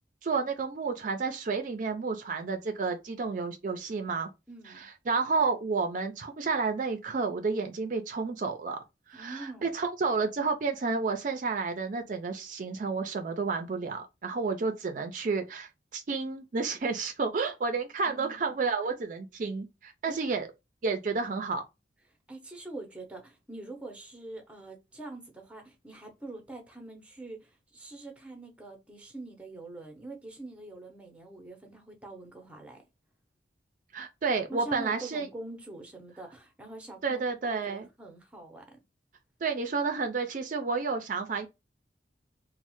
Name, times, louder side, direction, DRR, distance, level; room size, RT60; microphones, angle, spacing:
voice 1, 0.2-4.3 4.7-8.8 9.1-20.5 20.8-21.6 33.9-35.3 37.0-37.9 39.4-41.5, right 4 dB, 45° right, 0.4 m, -31 dB
voice 2, 4.5-4.9 9.1-9.7 18.0-18.5 20.1-20.2 22.3-32.8 34.5-38.8, right 2 dB, 5° right, 0.7 m, -44 dB
3.1 x 2.0 x 2.9 m
head